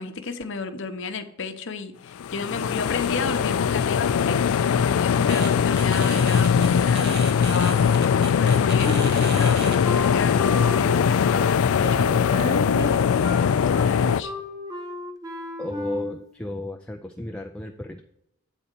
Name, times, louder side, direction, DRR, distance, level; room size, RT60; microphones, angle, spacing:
voice 1, 0.0-14.3, left 4 dB, 60° left, 7 dB, 0.9 m, -33 dB
sound 1, 2.2-14.2, left 7 dB, 75° left, 0.4 m, -21 dB
sound 2, 5.3-5.5 5.8-9.8, right 3 dB, 50° right, 1.1 m, -35 dB
Wind instrument woodwind instrument, 8.8-16.3, equal, 15° right, 0.9 m, -35 dB
voice 2, 15.6-18.0, left 2 dB, 5° left, 2 dB, 0.4 m, -33 dB
9.0 x 4.2 x 6.7 m, 0.80 s
head